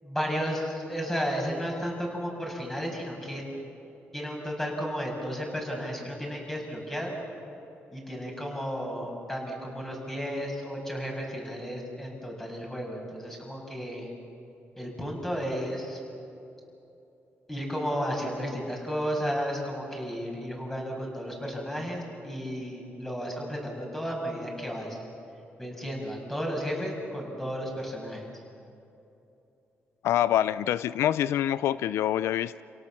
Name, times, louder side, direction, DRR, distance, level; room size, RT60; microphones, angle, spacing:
voice 1, 0.0-3.4 4.1-7.2 7.9-14.1 14.8-16.0 17.5-25.0 25.6-28.3, equal, 10° left, -1 dB, 6.8 m, -33 dB
voice 2, 30.0-32.6, left 11 dB, 90° left, 16 dB, 0.4 m, -26 dB
29.0 x 17.5 x 7.3 m, 2.9 s
cardioid pair, 105°, 4 cm